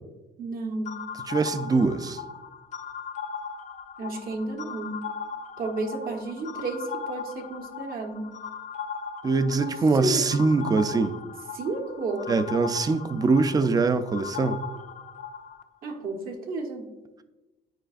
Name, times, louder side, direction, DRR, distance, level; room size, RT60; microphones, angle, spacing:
voice 1, 0.4-0.9 4.0-5.0 5.6-8.3 9.6-9.7 10.0-10.2 11.5-12.3 15.8-16.9, right 3 dB, 60° right, 1.2 m, -32 dB
sound 1, 0.8-15.6, left 6 dB, 45° left, 0.5 m, -38 dB
voice 2, 1.3-2.2 9.2-11.2 12.3-14.6, right 3 dB, 20° right, 0.4 m, -23 dB
9.0 x 4.7 x 2.5 m
cardioid pair, 110°, 17 cm